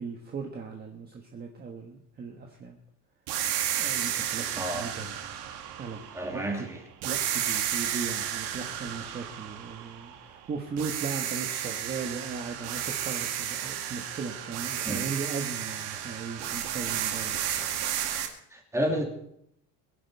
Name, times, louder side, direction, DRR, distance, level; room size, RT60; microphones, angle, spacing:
voice 1, 0.0-2.8 3.8-5.1 5.8-6.1 6.3-6.7 7.0-17.4, right 5 dB, 25° right, 2 dB, 1.4 m, -37 dB
sound 1, 3.3-6.6 7.0-10.4 10.8-18.3, right 10 dB, 80° right, 2.2 m, -32 dB
voice 2, 4.6-4.9 6.1-6.8 14.8-15.1 18.5-19.0, right 1 dB, 5° right, 1 dB, 2.6 m, -31 dB
22.5 x 11.0 x 4.7 m, 0.74 s
cardioid pair, 175°, 39 cm